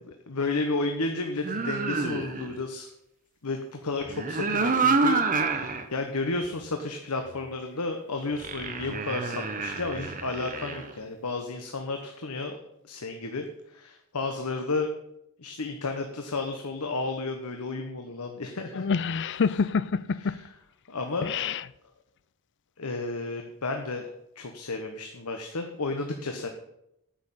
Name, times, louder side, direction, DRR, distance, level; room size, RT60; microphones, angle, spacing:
voice 1, 0.3-2.9 3.4-12.6 12.8-14.9 15.4-18.8 20.2-20.4 20.9-21.3 22.8-24.1 24.4-26.5, left 3 dB, 85° left, 1.1 m, -32 dB
sound 1, 1.4-2.6 4.0-5.8 6.3-6.4 8.3-10.9, right 4 dB, 40° right, 1.1 m, -28 dB
voice 2, 18.7-20.4 21.2-21.6, left 5 dB, 55° left, 0.5 m, -27 dB
9.5 x 6.4 x 8.6 m
head